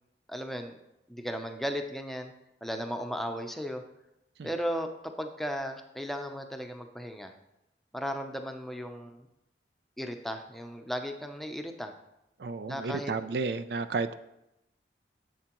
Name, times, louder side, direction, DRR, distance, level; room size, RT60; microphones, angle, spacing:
voice 1, 0.3-0.7 1.1-2.3 2.6-3.8 4.4-7.3 7.9-9.3 10.0-11.9 12.7-13.1, equal, ahead, 4 dB, 0.6 m, -35 dB
voice 2, 12.4-14.1, right 4 dB, 70° right, 12 dB, 0.4 m, -32 dB
11.0 x 7.7 x 3.0 m, 0.88 s
head